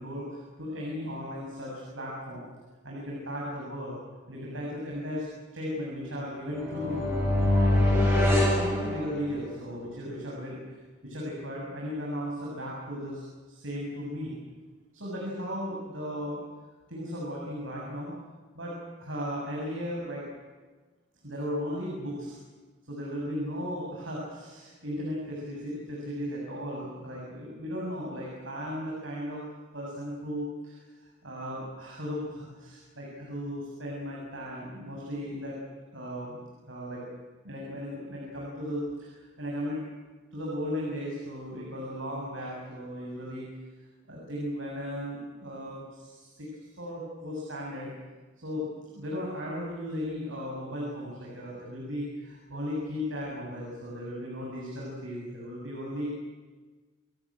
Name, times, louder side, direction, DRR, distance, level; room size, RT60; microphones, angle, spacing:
voice 1, 0.0-2.5 2.8-4.0 4.3-5.3 5.5-7.1 7.6-8.3 8.5-10.6 11.0-14.3 14.9-16.4 16.9-18.1 18.5-20.2 21.2-22.4 22.9-29.4 29.7-30.8 31.2-35.6 35.9-37.0 37.4-39.8 40.3-43.5 44.1-47.9 48.4-56.1, equal, 85° right, -3 dB, 7.9 m, -36 dB
sound 1, 6.5-9.6, left 1 dB, 10° right, 7.9 m, -24 dB
29.0 x 18.5 x 9.1 m, 1.3 s
head